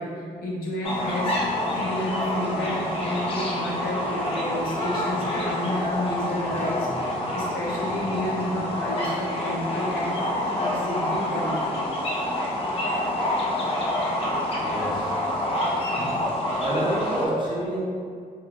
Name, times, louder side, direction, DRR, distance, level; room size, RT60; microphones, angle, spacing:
voice 1, 0.0-11.8, equal, 85° left, -3 dB, 0.6 m, -31 dB
sound 1, 0.8-17.3, left 1 dB, 40° left, 0.4 m, -27 dB
voice 2, 14.5-15.1 16.6-17.8, right 1 dB, 30° right, -6 dB, 0.7 m, -28 dB
2.9 x 2.3 x 2.4 m, 2.1 s
cardioid pair, 125°, 15 cm